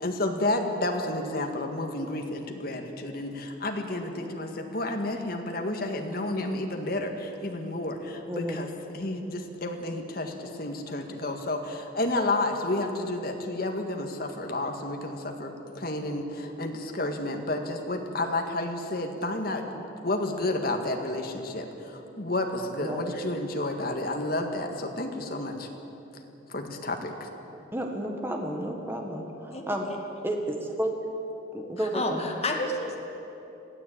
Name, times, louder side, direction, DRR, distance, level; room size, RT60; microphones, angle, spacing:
voice 1, 0.0-25.7 26.5-27.3, left 2 dB, 50° left, 3 dB, 1.9 m, -31 dB
voice 2, 27.7-29.9 30.2-31.0 31.5-32.3, right 1 dB, 10° right, 2 dB, 1.6 m, -31 dB
voice 3, 31.8-33.0, left 2 dB, 30° left, 0 dB, 2.2 m, -30 dB
21.5 x 15.0 x 8.8 m, 3.0 s
head